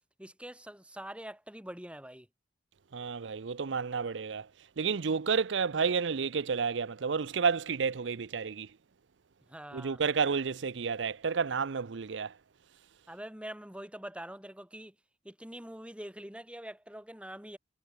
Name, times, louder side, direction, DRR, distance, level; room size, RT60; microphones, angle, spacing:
voice 1, 0.2-2.3 9.5-10.0 13.1-14.9 15.2-17.6, right 1 dB, 5° right, 6.5 m, -44 dB
voice 2, 2.9-4.5 4.8-8.7 9.7-12.3, right 5 dB, 80° right, 0.6 m, -31 dB
head